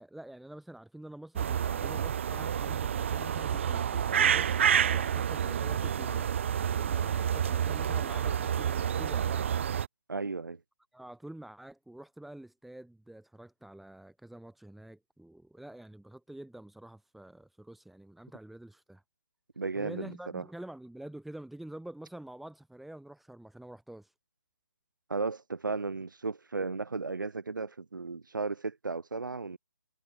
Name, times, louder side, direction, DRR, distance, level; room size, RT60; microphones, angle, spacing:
voice 1, 0.0-6.3 6.6-9.5 10.9-19.0 19.8-24.1, right 1 dB, ahead, 4.1 m, -47 dB
sound 1, 1.4-9.9, right 8 dB, 40° right, 0.5 m, -29 dB
voice 2, 10.1-10.6 19.6-20.4 25.1-29.6, right 4 dB, 90° right, 3.0 m, -35 dB
hypercardioid pair, 160°, 10 cm